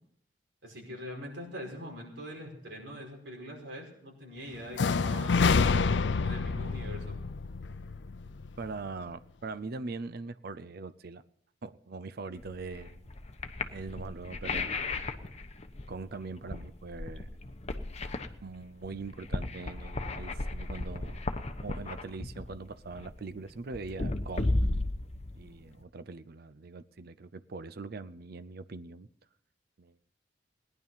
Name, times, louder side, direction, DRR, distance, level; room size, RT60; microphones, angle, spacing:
voice 1, 0.6-5.6 6.2-7.2, equal, 80° right, 5.3 m, -43 dB
sound 1, 4.8-8.7, left 4 dB, 75° left, 0.5 m, -28 dB
voice 2, 8.6-11.2 11.6-13.0 13.7-14.8 15.9-17.3 18.4-21.2 21.6-24.5 25.3-29.1 29.8-29.9, right 3 dB, 60° right, 0.6 m, -42 dB
sound 2, 12.4-25.8, left 2 dB, 40° left, 1.0 m, -35 dB
18.0 x 10.5 x 5.6 m
head